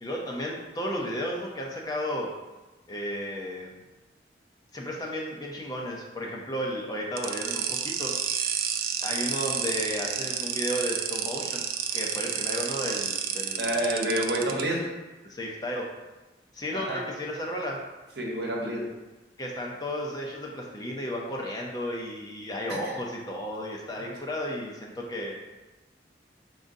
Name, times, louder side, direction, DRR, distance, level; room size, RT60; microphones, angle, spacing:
voice 1, 0.0-2.3 2.9-3.8 4.7-8.1 9.0-11.6 11.9-13.8 15.2-15.9 16.5-17.8 19.4-25.4, equal, 20° left, -2 dB, 0.5 m, -33 dB
sound 1, 7.2-14.6, right 8 dB, 55° right, 0.3 m, -30 dB
voice 2, 13.6-14.9 16.7-17.0 18.2-18.9 22.7-22.9, right 1 dB, 70° right, -2 dB, 0.9 m, -28 dB
5.0 x 3.8 x 2.6 m, 1.1 s
head